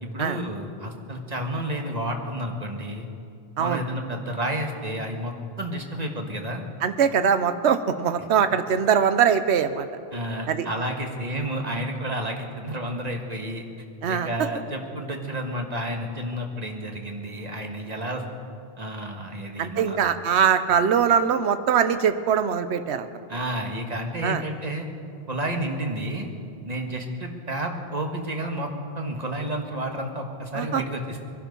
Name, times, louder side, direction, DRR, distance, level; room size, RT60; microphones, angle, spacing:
voice 1, 0.0-3.1 3.6-5.3 5.6-6.6 10.1-13.6 14.1-18.2 18.8-20.0 23.3-24.9 25.3-26.3 26.7-28.7 29.0-31.2, right 1 dB, 40° right, 3 dB, 1.7 m, -31 dB
voice 2, 6.8-9.9 10.5-10.7 14.0-14.3 19.6-23.1 24.2-24.4 30.5-30.8, right 7 dB, 80° right, 10 dB, 1.1 m, -22 dB
22.5 x 12.0 x 5.4 m, 2.4 s
omnidirectional pair, 1.1 m